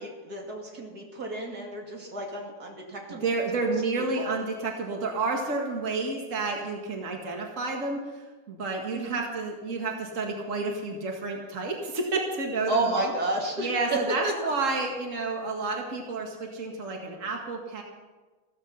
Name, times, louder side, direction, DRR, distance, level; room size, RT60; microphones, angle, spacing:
voice 1, 0.0-3.4 3.9-4.3 8.9-9.2 12.7-14.5, right 1 dB, 85° right, 0 dB, 3.0 m, -31 dB
voice 2, 3.1-13.1 13.6-17.8, right 3 dB, 55° right, 1 dB, 2.2 m, -30 dB
15.0 x 14.0 x 5.7 m, 1.3 s
omnidirectional pair, 1.6 m